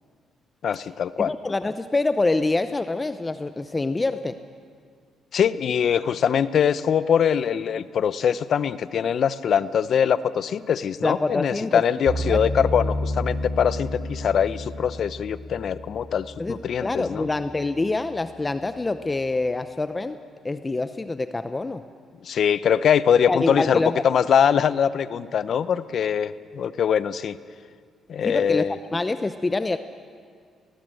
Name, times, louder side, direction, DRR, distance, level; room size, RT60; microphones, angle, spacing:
voice 1, 0.6-1.3 5.3-17.3 22.2-27.4 28.1-28.7, left 8 dB, 60° left, 15 dB, 0.7 m, -22 dB
voice 2, 1.2-4.4 11.0-11.8 12.2-12.4 16.4-20.2 20.4-21.8 23.3-24.0 28.2-28.6 28.9-29.8, left 2 dB, 20° left, 11 dB, 0.6 m, -26 dB
sound 1, 12.1-17.2, equal, 65° right, 3.7 m, -30 dB
19.5 x 19.5 x 7.8 m, 2.1 s
cardioid pair, 90°, 0 cm